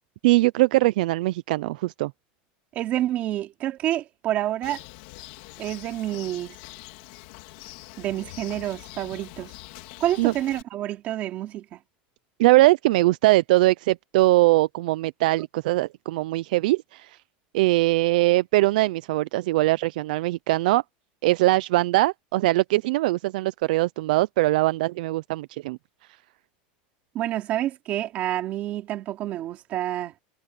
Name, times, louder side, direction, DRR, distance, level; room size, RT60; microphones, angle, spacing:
voice 1, 0.2-2.1 10.2-10.3 12.4-17.2 17.5-20.8 21.2-25.8, right 19 dB, 65° right, 0.4 m, -21 dB
voice 2, 2.7-4.8 5.6-6.5 8.0-9.5 10.0-11.8 27.1-30.1, right 13 dB, 30° right, 2.7 m, -28 dB
Bird, 4.6-10.6, left 20 dB, 50° left, 2.8 m, -44 dB
supercardioid pair, 175°, 5 cm